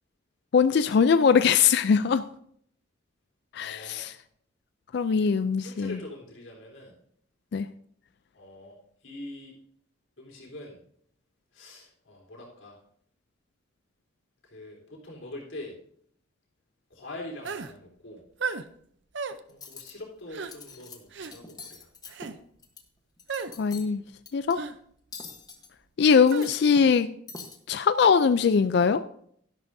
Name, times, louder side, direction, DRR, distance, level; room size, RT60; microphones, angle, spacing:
voice 1, 0.5-2.2 3.5-4.1 4.9-6.0 7.5-7.7 23.6-24.0 24.3-24.6 26.0-27.1 27.7-29.0, left 6 dB, 55° left, 11 dB, 0.4 m, -21 dB
voice 2, 3.6-4.1 5.0-5.3 5.6-6.9 8.3-8.8 9.0-9.5 10.2-10.8 11.5-12.8 14.4-15.8 16.9-18.2 19.5-21.9, left 1 dB, 80° left, -2 dB, 3.7 m, -43 dB
sound 1, 17.4-17.7 18.4-18.7 19.1-19.4 20.3-20.5 21.1-21.3 22.1-22.4 23.3-23.5 24.5-24.8 26.3-26.5, right 4 dB, 65° right, 0.6 m, -33 dB
Cutlery silverware, 19.5-19.9 20.4-21.0 21.2-22.8 23.2-23.9 24.3-24.5 25.1-25.7 26.1-27.0 27.3-27.6, left 4 dB, 20° left, 1.1 m, -44 dB
12.0 x 11.0 x 2.7 m, 0.64 s
head